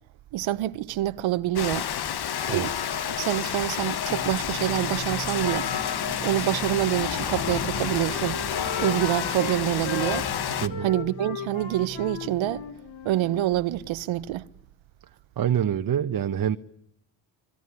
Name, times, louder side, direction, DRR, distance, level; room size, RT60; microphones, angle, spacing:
voice 1, 0.3-1.9 2.5-2.7 3.2-5.7 6.2-8.5 8.8-10.3 10.8-12.6 13.0-14.5, right 14 dB, 75° right, 1.1 m, -26 dB
Rain, 1.6-10.7, left 9 dB, 55° left, 1.5 m, -29 dB
Singing, 4.0-12.9, right 6 dB, 25° right, 1.1 m, -41 dB
Wind instrument woodwind instrument, 6.9-9.6 9.8-13.5, left 8 dB, 80° left, 4.1 m, -37 dB
voice 2, 15.4-16.6, right 9 dB, 45° right, 1.2 m, -25 dB
25.0 x 22.0 x 9.9 m
cardioid pair, 80°, 47 cm